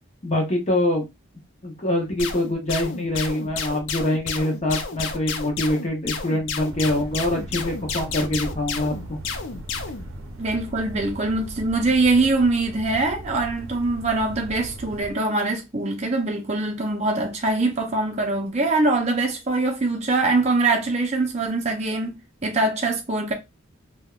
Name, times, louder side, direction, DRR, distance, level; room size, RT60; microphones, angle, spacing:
voice 1, 0.2-1.0 1.6-9.2, left 1 dB, 30° left, 0.8 m, -24 dB
sound 1, 2.2-10.1, left 5 dB, 65° left, 0.4 m, -31 dB
sound 2, 6.7-15.1, right 1 dB, 85° right, 0.6 m, -39 dB
voice 2, 10.4-22.1 22.4-23.3, right 2 dB, 30° right, 0.5 m, -23 dB
3.3 x 2.1 x 2.3 m
head